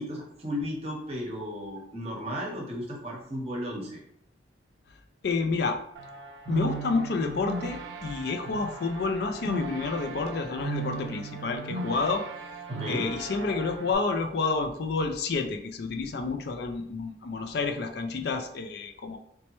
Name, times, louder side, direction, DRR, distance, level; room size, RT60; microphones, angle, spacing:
voice 1, 0.0-4.0 12.7-13.1, equal, 35° right, -1 dB, 0.8 m, -34 dB
voice 2, 5.2-5.8 6.5-12.2 12.9-19.2, left 4 dB, 60° left, 5 dB, 0.4 m, -29 dB
sound 1, 6.0-14.0, right 4 dB, 75° right, 0.4 m, -38 dB
4.1 x 2.2 x 3.0 m, 0.73 s
head